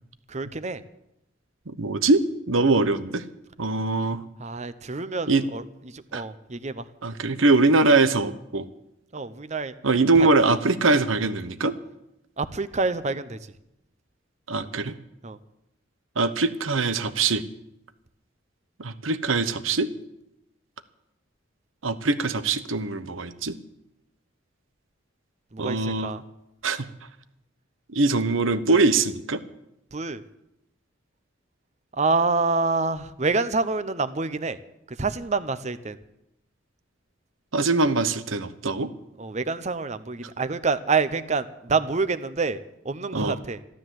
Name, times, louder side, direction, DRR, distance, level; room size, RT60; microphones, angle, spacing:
voice 1, 0.3-0.8 4.4-6.9 9.1-9.7 10.2-10.3 12.4-13.4 15.2-15.4 25.5-26.2 29.9-30.2 32.0-34.6 34.9-36.0 39.2-42.6 42.8-43.6, right 4 dB, 35° right, 13 dB, 0.8 m, -27 dB
voice 2, 1.7-3.2 3.6-4.2 5.3-5.4 6.1-6.2 7.0-8.7 9.8-11.7 14.5-14.9 16.2-17.4 18.8-19.9 21.8-23.6 25.6-26.1 26.6-26.9 27.9-29.4 37.5-38.9 43.1-43.4, right 3 dB, 90° right, 13 dB, 1.0 m, -22 dB
14.0 x 12.5 x 7.7 m, 0.84 s
head